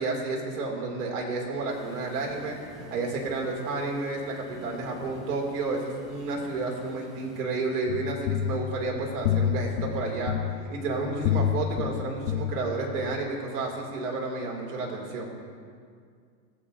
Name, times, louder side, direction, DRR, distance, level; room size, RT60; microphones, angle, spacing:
voice 1, 0.0-10.3 10.7-15.3, right 3 dB, 60° right, -1 dB, 2.4 m, -31 dB
sound 1, 1.5-6.6, right 2 dB, 45° right, 2.2 m, -51 dB
sound 2, 1.7-7.4, equal, ahead, 0.4 m, -50 dB
sound 3, 7.9-13.1, left 9 dB, 60° left, 0.7 m, -29 dB
18.0 x 8.0 x 2.6 m, 2.1 s
hypercardioid pair, 125°, 49 cm